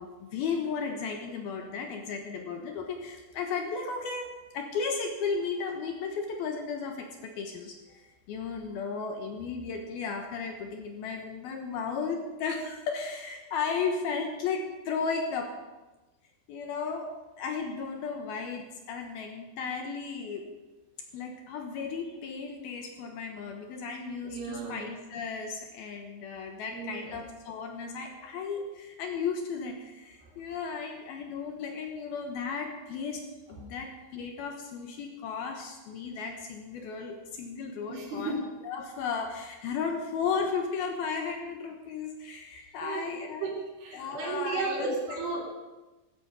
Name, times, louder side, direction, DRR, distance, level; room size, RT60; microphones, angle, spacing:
voice 1, 0.0-4.3 4.5-15.5 16.5-17.1 17.4-20.4 21.1-33.2 33.5-38.3 38.6-43.5 43.9-45.2, left 5 dB, 70° left, 3 dB, 2.7 m, -35 dB
voice 2, 24.2-24.8 26.7-27.2 37.9-38.4 42.8-43.1 43.4-43.5 43.8-45.4, right 4 dB, 60° right, -2 dB, 4.7 m, -34 dB
14.0 x 14.0 x 5.3 m, 1.1 s
omnidirectional pair, 5.1 m